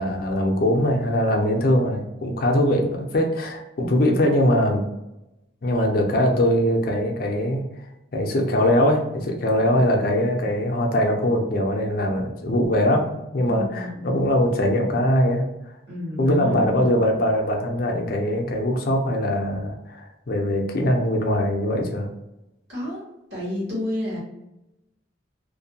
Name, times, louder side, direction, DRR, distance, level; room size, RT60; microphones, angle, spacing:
voice 1, 0.0-4.9 5.6-7.6 8.1-15.5 16.2-22.1, left 1 dB, 50° left, 1 dB, 0.4 m, -22 dB
voice 2, 13.5-14.2 15.9-17.0 22.7-23.0 23.3-24.2, left 1 dB, 55° right, -7 dB, 1.2 m, -30 dB
2.5 x 2.2 x 2.7 m, 0.92 s
head